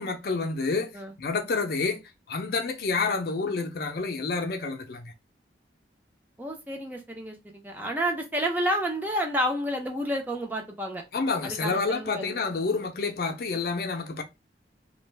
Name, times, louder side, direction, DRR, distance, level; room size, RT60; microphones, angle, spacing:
voice 1, 0.0-0.9 1.2-2.0 2.3-5.1 11.1-14.2, left 4 dB, 55° left, 0.5 m, -28 dB
voice 2, 6.4-11.0 11.4-12.4, equal, 10° right, 0.4 m, -30 dB
2.4 x 2.2 x 3.2 m
head